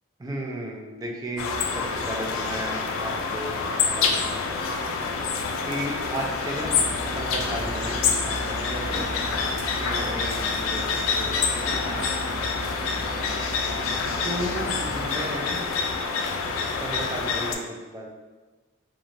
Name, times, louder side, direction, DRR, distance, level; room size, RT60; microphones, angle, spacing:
voice 1, 0.2-4.6 5.6-6.9 7.1-8.9 9.8-12.0 14.2-15.6 16.8-18.1, right 1 dB, 20° right, -1 dB, 0.4 m, -34 dB
sound 1, 1.4-17.5, left 5 dB, 90° left, 0.3 m, -27 dB
sound 2, 6.6-15.1, right 1 dB, ahead, 0.8 m, -36 dB
3.0 x 2.2 x 2.5 m, 1.2 s
head